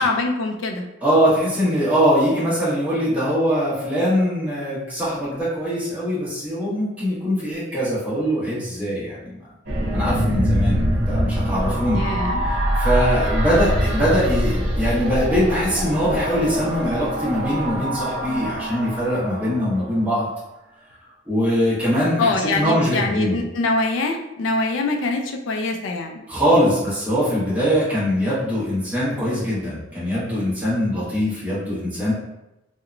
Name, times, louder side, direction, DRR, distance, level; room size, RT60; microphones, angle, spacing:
voice 1, 0.0-0.8 11.9-12.4 22.2-26.2, left 3 dB, 80° left, 4 dB, 0.4 m, -24 dB
voice 2, 1.0-9.4 9.9-12.0 12.8-20.3 21.3-23.4 26.3-32.1, equal, 10° right, -10 dB, 1.0 m, -22 dB
sound 1, 9.7-20.0, equal, 65° right, 0.7 m, -24 dB
2.8 x 2.1 x 2.4 m, 0.92 s
head